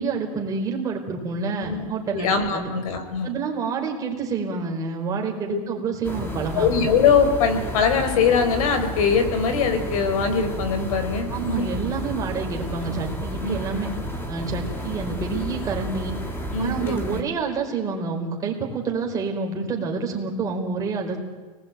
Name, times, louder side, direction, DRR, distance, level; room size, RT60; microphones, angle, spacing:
voice 1, 0.0-2.7 3.2-6.7 11.3-13.9 14.3-16.1 16.6-21.2, right 4 dB, 20° right, 1 dB, 4.6 m, -28 dB
voice 2, 2.1-3.3 5.5-5.6 6.5-11.7 13.4-13.6 16.5-17.0, left 6 dB, 70° left, 8 dB, 5.2 m, -22 dB
sound 1, 6.0-17.2, equal, 10° left, 3.0 m, -31 dB
29.5 x 20.5 x 9.3 m, 1.4 s
supercardioid pair, 165°, 19 cm